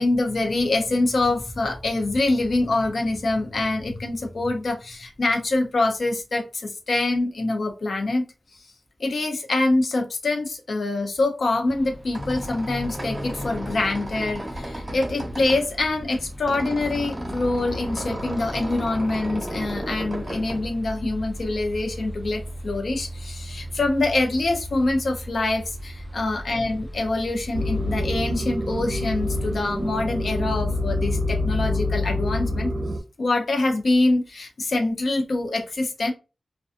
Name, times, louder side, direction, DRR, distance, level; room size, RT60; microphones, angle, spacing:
voice 1, 0.0-8.2 9.0-32.7 33.2-36.1, left 2 dB, 70° left, 3 dB, 0.6 m, -25 dB
sound 1, 11.7-30.0, equal, 5° left, 0.6 m, -38 dB
Squeak, 11.8-21.4, right 1 dB, 25° right, 1.0 m, -34 dB
sound 2, 27.5-33.0, left 1 dB, 55° right, 0.5 m, -26 dB
2.4 x 2.3 x 2.5 m, 0.30 s
wide cardioid pair, 110°, 0 cm